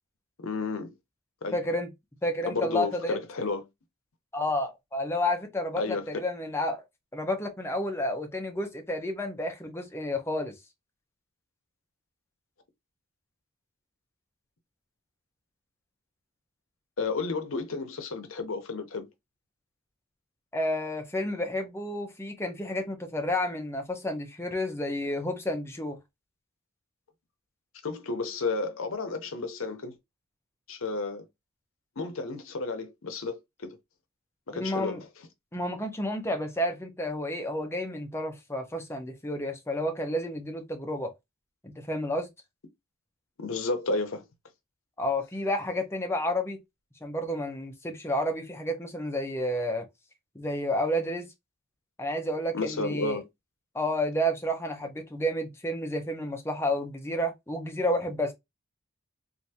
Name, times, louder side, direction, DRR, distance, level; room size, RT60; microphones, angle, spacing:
voice 1, 0.4-0.9 1.4-1.6 2.5-3.7 5.8-6.2 17.0-19.1 27.8-29.9 30.7-31.2 32.0-33.8 34.5-35.0 43.4-44.2 52.5-53.2, left 3 dB, 65° left, 0.7 m, -32 dB
voice 2, 1.5-1.9 2.2-3.2 4.3-6.8 7.1-10.5 20.5-26.0 34.5-35.0 35.5-41.1 41.6-42.3 45.0-46.6 47.0-49.9 50.3-51.3 52.0-53.2 53.7-58.3, left 1 dB, 10° left, 0.6 m, -30 dB
3.4 x 2.6 x 2.7 m
head